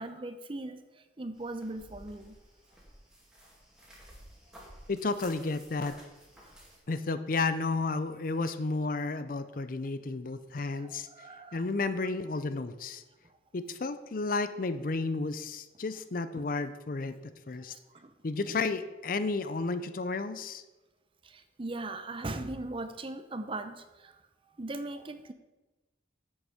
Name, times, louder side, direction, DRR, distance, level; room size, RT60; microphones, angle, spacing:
voice 1, 0.0-2.4 6.5-6.6 10.5-11.6 16.4-16.5 17.7-18.6 21.2-24.2 24.6-25.3, right 2 dB, 30° right, 10 dB, 0.6 m, -40 dB
sound 1, 1.3-6.8, equal, 5° right, 2.2 m, -53 dB
voice 2, 4.9-5.9 6.9-11.1 11.5-13.0 13.5-17.7 18.2-20.6, left 3 dB, 50° left, 12 dB, 0.5 m, -32 dB
9.6 x 7.9 x 5.0 m, 1.1 s
head